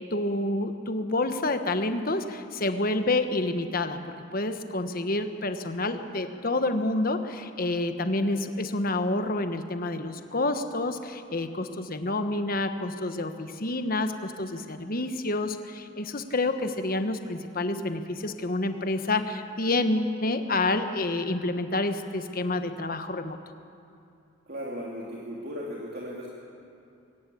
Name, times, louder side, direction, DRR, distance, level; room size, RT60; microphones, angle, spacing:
voice 1, 0.1-4.0 4.3-23.4, left 2 dB, 45° left, 8 dB, 1.3 m, -28 dB
voice 2, 24.5-26.3, equal, 50° right, -4 dB, 2.9 m, -36 dB
22.0 x 19.0 x 8.6 m, 2.6 s
head